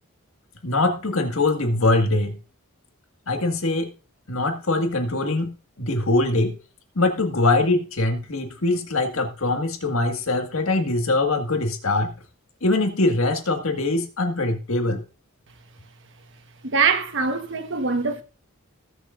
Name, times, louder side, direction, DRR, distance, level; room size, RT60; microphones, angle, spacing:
voice 1, 0.6-2.4 3.3-3.9 4.3-6.6 7.0-12.1 12.6-15.0, left 2 dB, 70° left, 1.9 m, -22 dB
voice 2, 16.6-18.2, right 5 dB, 60° right, 1.3 m, -23 dB
19.5 x 6.9 x 2.6 m
head